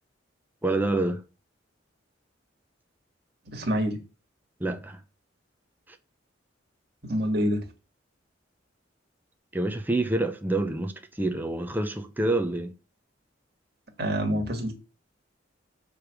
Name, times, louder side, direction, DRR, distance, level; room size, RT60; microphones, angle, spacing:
voice 1, 0.6-1.2 4.6-4.9 9.5-12.7, right 2 dB, 10° right, 0.7 m, -27 dB
voice 2, 3.5-4.0 7.0-7.6 14.0-14.7, equal, 55° right, 1.8 m, -26 dB
6.7 x 3.4 x 6.1 m
head